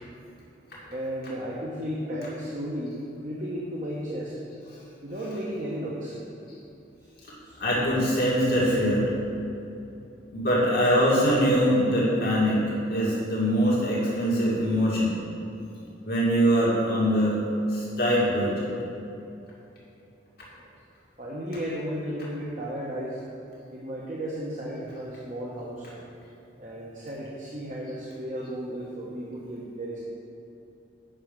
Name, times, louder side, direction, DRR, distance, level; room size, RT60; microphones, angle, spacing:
voice 1, 0.9-3.0 3.2-4.3 5.0-6.2 7.4-7.6 20.5-20.6 21.2-23.2 23.7-26.1 26.6-30.0, equal, 45° right, -5 dB, 1.1 m, -34 dB
voice 2, 7.6-9.1 10.3-12.6 12.9-15.2 16.0-17.4 17.7-18.7, equal, 60° left, -7 dB, 2.2 m, -23 dB
9.1 x 6.2 x 5.4 m, 2.9 s
head